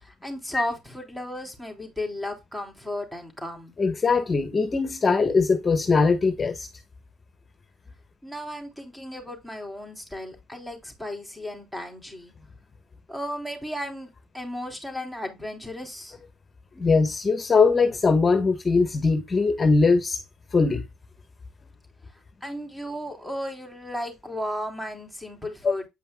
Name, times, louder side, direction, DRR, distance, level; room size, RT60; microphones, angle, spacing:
voice 1, 0.0-3.8 8.2-12.3 13.1-14.1 14.3-16.2 22.4-25.9, left 1 dB, 5° right, 3.4 m, -34 dB
voice 2, 3.8-6.7 16.8-20.2 20.5-20.8 25.6-25.7, left 4 dB, 35° left, 1.1 m, -21 dB
8.6 x 5.3 x 2.2 m
hypercardioid pair, 60°, 0 cm